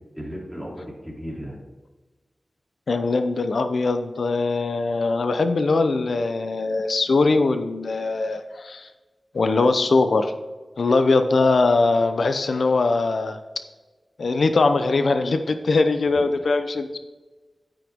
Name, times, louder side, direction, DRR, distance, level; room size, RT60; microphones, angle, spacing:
voice 1, 0.2-1.5 16.1-16.6, equal, ahead, -2 dB, 3.1 m, -36 dB
voice 2, 2.9-8.9 9.3-10.3 10.8-13.4 14.2-17.0, left 3 dB, 80° left, 9 dB, 0.8 m, -21 dB
9.3 x 9.0 x 3.7 m, 1.3 s
wide cardioid pair, 65°, 0 cm